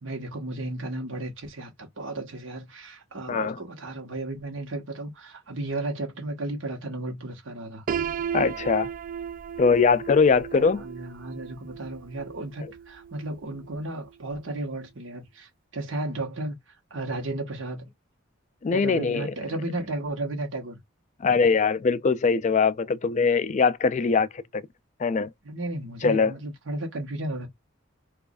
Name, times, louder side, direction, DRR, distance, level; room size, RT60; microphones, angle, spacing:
voice 1, 0.0-7.8 10.5-17.9 18.7-20.8 25.4-27.5, right 2 dB, 65° right, 1.2 m, -34 dB
Piano, 7.9-13.7, right 7 dB, 45° right, 0.3 m, -35 dB
voice 2, 8.3-8.9 9.6-10.8 18.6-19.3 21.2-24.6 25.0-25.3 26.0-26.3, left 5 dB, 35° left, 0.3 m, -22 dB
4.6 x 2.5 x 2.4 m
head